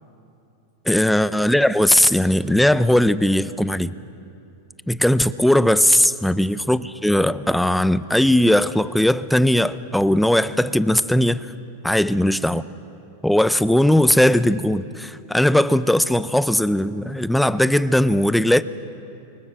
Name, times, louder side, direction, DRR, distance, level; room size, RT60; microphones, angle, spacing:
voice 1, 0.9-3.9 4.9-11.5 11.8-12.6 13.2-18.6, left 1 dB, ahead, 0.7 m, -18 dB
29.0 x 25.0 x 6.2 m
hypercardioid pair, 110°, 0 cm